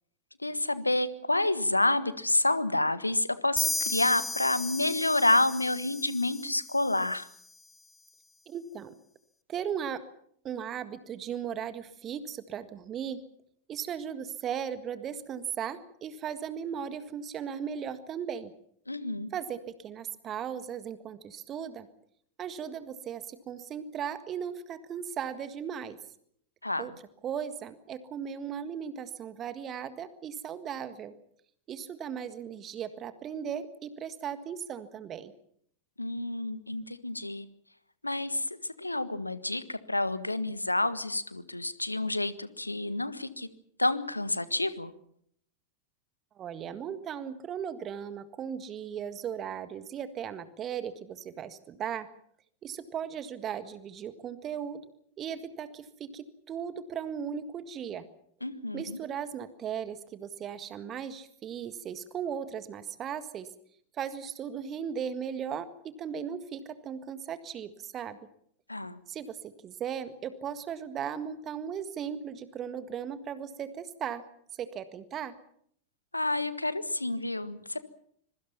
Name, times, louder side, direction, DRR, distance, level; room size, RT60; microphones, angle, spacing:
voice 1, 0.4-7.3 18.9-19.3 26.6-26.9 36.0-37.4 38.0-38.5 38.8-43.5 43.8-44.9 58.4-59.0 68.7-69.0 76.1-77.8, left 2 dB, 85° left, 14 dB, 1.5 m, -29 dB
sound 1, 3.6-7.2, left 2 dB, 5° left, 1.4 m, -35 dB
voice 2, 8.5-8.9 9.5-10.0 10.4-13.2 13.7-18.5 19.3-21.9 22.4-26.0 26.8-26.9 27.2-31.1 31.7-35.3 46.4-52.1 52.6-54.8 55.2-58.1 58.7-63.5 63.9-68.2 69.1-74.2 74.6-75.3, right 8 dB, 30° right, 11 dB, 1.7 m, -37 dB
26.0 x 23.0 x 5.8 m, 0.66 s
figure-of-eight pair, 90°, 0 cm